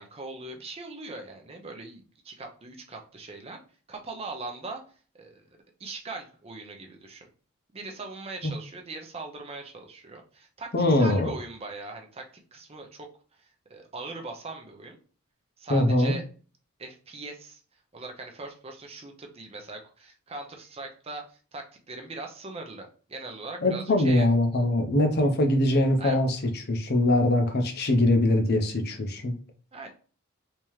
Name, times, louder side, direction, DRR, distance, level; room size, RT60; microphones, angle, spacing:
voice 1, 0.0-3.6 3.9-4.8 5.1-5.4 5.8-7.3 7.7-15.0 15.6-16.2 16.8-17.6 17.9-24.3 26.0-26.2 29.7-29.9, right 3 dB, 30° right, 3 dB, 0.6 m, -40 dB
voice 2, 10.7-11.3 15.7-16.2 23.6-26.4 26.7-29.4, left 1 dB, 50° left, 5 dB, 0.6 m, -22 dB
3.5 x 2.8 x 3.1 m, 0.39 s
head